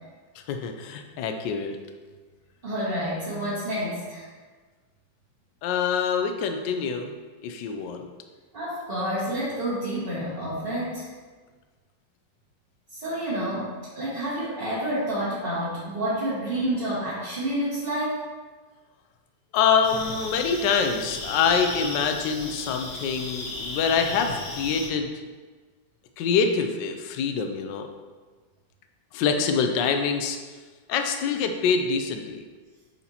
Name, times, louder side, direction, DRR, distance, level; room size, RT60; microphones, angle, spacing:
voice 1, 0.4-1.8 5.6-7.1 7.4-8.1 19.5-25.1 26.2-27.9 29.1-30.4 30.9-32.4, left 6 dB, 75° left, 5 dB, 1.2 m, -25 dB
voice 2, 2.6-4.2 8.5-11.1 12.9-18.2, right 1 dB, 30° right, -11 dB, 1.7 m, -29 dB
sound 1, 19.8-24.9, left 2 dB, 55° left, 1.3 m, -35 dB
9.3 x 4.2 x 2.8 m, 1.4 s
omnidirectional pair, 2.1 m